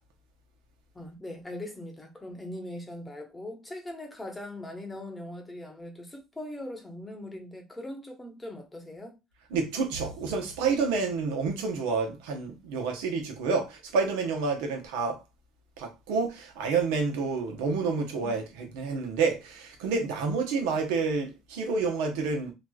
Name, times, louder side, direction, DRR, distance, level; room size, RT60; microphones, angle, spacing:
voice 1, 0.9-9.2 18.2-18.3, left 1 dB, 15° left, 0.9 m, -40 dB
voice 2, 9.5-15.2 15.8-22.5, right 4 dB, 80° right, 0.8 m, -29 dB
sound 1, 9.9-11.7, right 1 dB, 55° right, 1.1 m, -45 dB
3.0 x 2.4 x 2.3 m
supercardioid pair, 80°, 0 cm